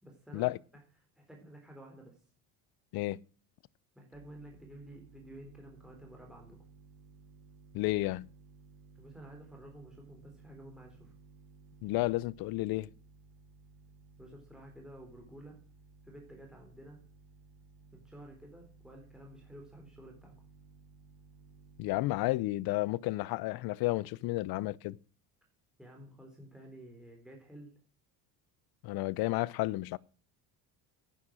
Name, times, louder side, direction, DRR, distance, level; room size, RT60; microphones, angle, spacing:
voice 1, 0.0-0.5 1.2-2.2 4.0-6.6 9.0-11.1 14.2-15.6 16.0-17.0 17.9-20.3 25.8-27.7, right 1 dB, ahead, 3.9 m, -52 dB
sound 1, 4.1-22.3, right 4 dB, 65° right, 4.3 m, -58 dB
voice 2, 7.7-8.3 11.8-12.9 21.8-25.0 28.8-30.0, left 19 dB, 65° left, 0.7 m, -32 dB
10.5 x 10.0 x 6.2 m
cardioid pair, 120°, 39 cm